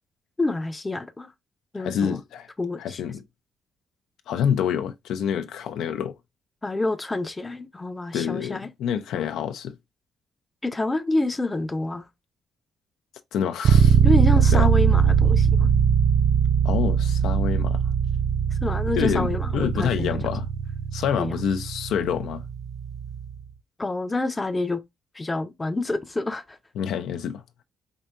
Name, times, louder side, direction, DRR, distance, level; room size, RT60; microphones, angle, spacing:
voice 1, 0.4-1.3 1.7-2.2 2.6-3.0 6.6-8.7 10.6-12.1 14.0-15.7 18.6-20.2 21.2-21.4 23.8-24.8 25.1-26.6, left 2 dB, 20° left, 0.6 m, -27 dB
voice 2, 1.8-2.5 2.8-3.2 4.3-6.1 8.1-9.8 13.3-14.0 14.5-14.7 16.6-17.8 19.0-20.5 20.9-22.4 26.8-27.4, left 8 dB, 80° left, 0.4 m, -27 dB
sound 1, 13.6-23.4, right 7 dB, 60° right, 0.4 m, -21 dB
4.5 x 2.6 x 2.4 m
cardioid pair, 90°, 0 cm